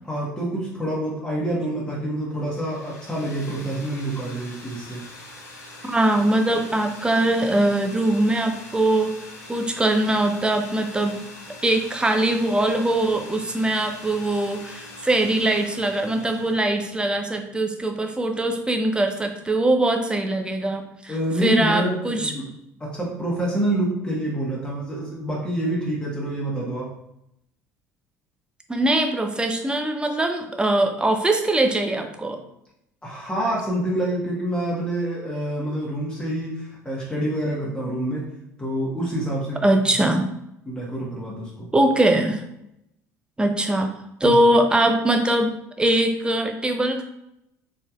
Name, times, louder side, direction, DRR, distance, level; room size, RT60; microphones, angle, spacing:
voice 1, 0.1-5.0 21.1-22.5 22.8-26.9 33.0-38.3 38.6-39.7 40.0-40.1 40.6-41.7 44.2-44.4, right 1 dB, 10° left, -5 dB, 1.5 m, -27 dB
sound 1, 2.4-16.9, left 2 dB, 70° left, 0.9 m, -43 dB
voice 2, 5.9-9.1 9.5-11.2 11.6-21.1 21.4-22.3 28.7-32.4 39.6-40.3 41.7-42.4 43.4-43.9 44.2-47.0, right 1 dB, 10° right, 4 dB, 0.7 m, -22 dB
4.8 x 4.2 x 2.4 m, 0.81 s
figure-of-eight pair, 60°, 9 cm